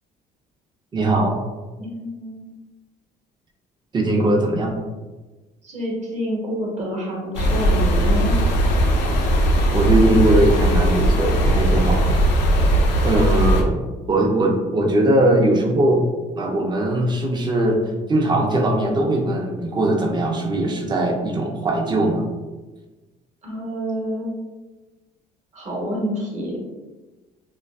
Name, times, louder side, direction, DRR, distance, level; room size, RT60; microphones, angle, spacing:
voice 1, 0.9-1.4 3.9-4.8 9.7-12.2 13.0-16.1 16.4-17.8 18.1-22.3, right 1 dB, 25° right, 1 dB, 0.5 m, -20 dB
voice 2, 1.8-2.5 5.6-8.4 23.4-24.4 25.5-26.7, equal, 45° right, -2 dB, 0.8 m, -28 dB
sound 1, 7.3-13.6, right 1 dB, 85° left, 0.4 m, -18 dB
2.4 x 2.3 x 2.2 m, 1.2 s
cardioid pair, 110°, 17 cm